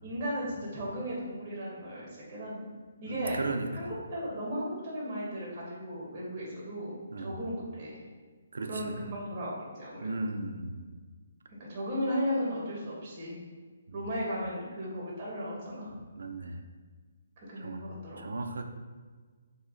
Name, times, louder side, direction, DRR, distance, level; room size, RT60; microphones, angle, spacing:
voice 1, 0.0-2.7 3.0-3.4 3.7-8.0 8.7-10.1 11.5-13.4 13.9-16.0 17.4-18.3, equal, 25° right, -5 dB, 0.9 m, -36 dB
voice 2, 3.1-4.0 7.1-7.4 8.5-9.0 10.0-10.9 13.9-14.1 16.2-16.6 17.6-17.8 18.2-18.6, right 2 dB, 80° right, 6 dB, 0.3 m, -36 dB
2.7 x 2.4 x 3.8 m, 1.5 s
hypercardioid pair, 165°, 0 cm